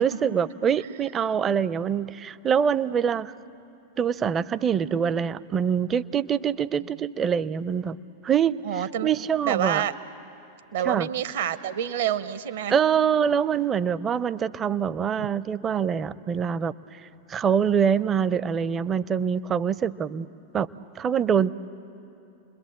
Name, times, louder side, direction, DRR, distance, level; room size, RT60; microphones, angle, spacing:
voice 1, 0.0-3.3 4.0-8.0 8.2-9.8 10.8-11.1 12.7-16.7 17.3-20.3 20.5-20.7 21.0-21.5, right 7 dB, 25° right, 18 dB, 0.5 m, -24 dB
voice 2, 8.6-9.1 9.4-9.9 10.7-12.8 15.2-15.3, right 10 dB, 60° right, 13 dB, 0.9 m, -28 dB
29.5 x 21.5 x 7.4 m, 2.8 s
figure-of-eight pair, 90°, 0 cm